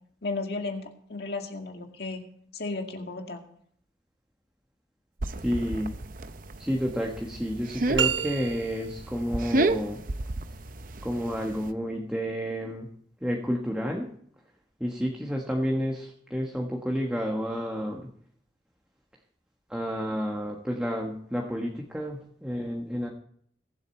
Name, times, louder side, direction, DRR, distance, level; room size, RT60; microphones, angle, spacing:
voice 1, 0.2-2.2 2.5-3.4, left 3 dB, 60° left, 3 dB, 2.2 m, -34 dB
sound 1, 5.2-11.7, right 2 dB, 45° right, 0.7 m, -32 dB
voice 2, 5.4-6.0 6.6-10.0 11.0-12.9 13.2-14.1 14.8-18.1 19.7-23.1, equal, 5° right, 0 dB, 1.3 m, -30 dB
sound 2, 8.0-9.1, right 8 dB, 85° right, 0.8 m, -29 dB
22.0 x 7.9 x 4.4 m, 0.63 s
head